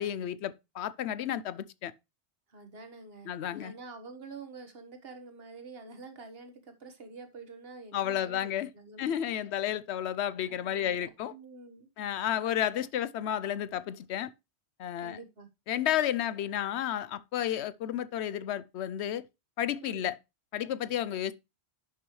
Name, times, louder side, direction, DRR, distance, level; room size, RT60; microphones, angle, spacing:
voice 1, 0.0-1.9 3.3-3.7 7.9-8.7 9.0-11.3 12.0-14.3 14.8-15.2 15.7-19.2 19.6-20.2 20.5-21.3, left 10 dB, 90° left, 0.9 m, -32 dB
voice 2, 2.5-9.2 10.5-11.9 15.0-15.5 19.8-20.1, right 3 dB, 65° right, 1.7 m, -47 dB
11.0 x 5.8 x 3.1 m
omnidirectional pair, 1.1 m